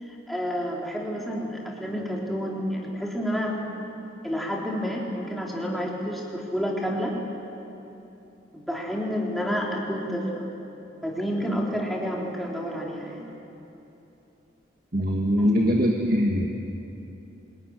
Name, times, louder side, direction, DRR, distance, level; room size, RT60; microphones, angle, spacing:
voice 1, 0.3-3.6 4.2-7.2 8.5-10.5 11.0-13.3 15.4-15.6, equal, ahead, -3 dB, 3.8 m, -29 dB
voice 2, 14.9-16.5, equal, 50° right, 1 dB, 1.9 m, -22 dB
25.5 x 21.0 x 10.0 m, 3.0 s
head